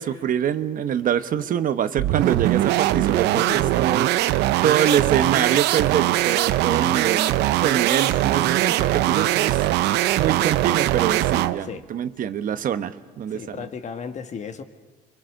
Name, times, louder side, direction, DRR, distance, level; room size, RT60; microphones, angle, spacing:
voice 1, 0.0-4.1 4.6-9.6 10.2-13.6, right 9 dB, 55° right, 11 dB, 1.1 m, -25 dB
sound 1, 2.0-11.6, right 14 dB, 85° right, 0.7 m, -21 dB
voice 2, 3.3-3.7 11.6-11.8 13.3-14.6, left 6 dB, 45° left, 8 dB, 1.7 m, -34 dB
28.5 x 23.5 x 6.5 m, 1.3 s
cardioid pair, 110°, 17 cm